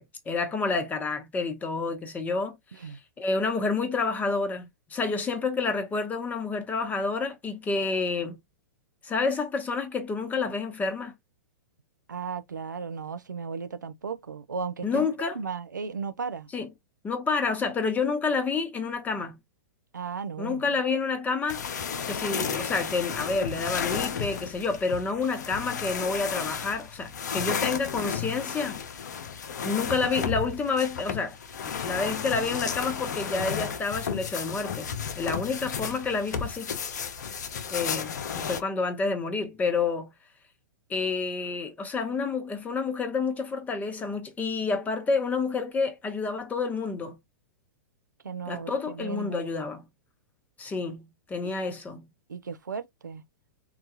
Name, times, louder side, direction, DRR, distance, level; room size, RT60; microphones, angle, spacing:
voice 1, 0.0-2.6 2.8-8.4 9.0-11.1 14.8-15.4 16.5-16.7 17.0-19.4 20.4-21.6 22.1-28.8 29.6-31.4 31.6-34.9 35.2-36.7 37.7-40.1 40.9-47.2 48.5-49.8 50.6-52.0, left 4 dB, 15° left, 0.8 m, -29 dB
voice 2, 12.1-16.5 19.9-20.6 48.2-49.5 51.4-51.5 52.3-53.2, right 5 dB, 90° right, 0.4 m, -35 dB
sound 1, 21.5-38.6, left 7 dB, 70° left, 0.6 m, -33 dB
3.8 x 2.3 x 2.8 m
hypercardioid pair, 110°, 10 cm